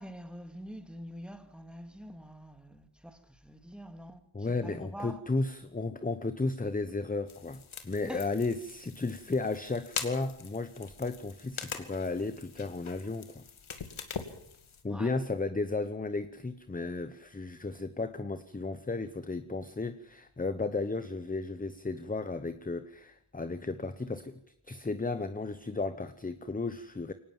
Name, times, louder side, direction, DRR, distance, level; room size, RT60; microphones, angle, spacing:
voice 1, 0.0-4.2 4.6-5.2 8.0-8.3 14.9-15.1, equal, ahead, 2.2 m, -45 dB
voice 2, 4.3-13.4 14.8-27.1, left 3 dB, 15° left, 1.0 m, -34 dB
sound 1, 7.3-14.8, left 6 dB, 75° left, 2.5 m, -43 dB
23.5 x 18.5 x 7.3 m
wide cardioid pair, 110°, 49 cm